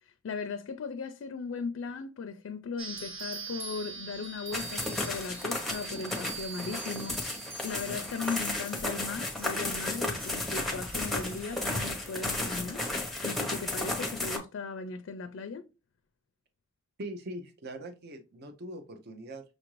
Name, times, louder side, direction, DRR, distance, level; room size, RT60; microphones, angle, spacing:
voice 1, 0.0-12.8 13.2-15.6, left 5 dB, 70° left, 0.4 m, -38 dB
sound 1, 2.8-12.4, right 5 dB, 30° right, 1.1 m, -44 dB
sound 2, 4.5-14.4, left 2 dB, ahead, 0.8 m, -34 dB
voice 2, 17.0-19.4, right 1 dB, 55° right, 0.6 m, -41 dB
6.2 x 2.5 x 3.0 m
head